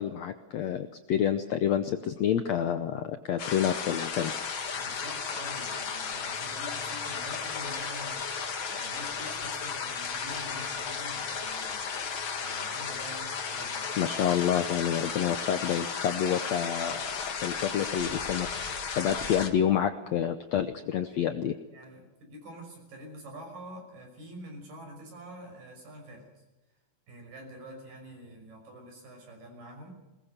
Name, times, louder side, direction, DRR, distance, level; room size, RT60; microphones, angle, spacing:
voice 1, 0.0-4.4 14.0-18.6 19.0-21.5, left 9 dB, 75° left, 9 dB, 1.6 m, -28 dB
sound 1, 3.4-19.5, left 6 dB, 45° left, 2.0 m, -34 dB
voice 2, 4.7-8.2 8.7-11.8 12.4-14.0 21.7-26.4 27.1-29.9, equal, 65° right, 2 dB, 7.5 m, -46 dB
21.5 x 20.0 x 6.7 m, 1.1 s
omnidirectional pair, 4.2 m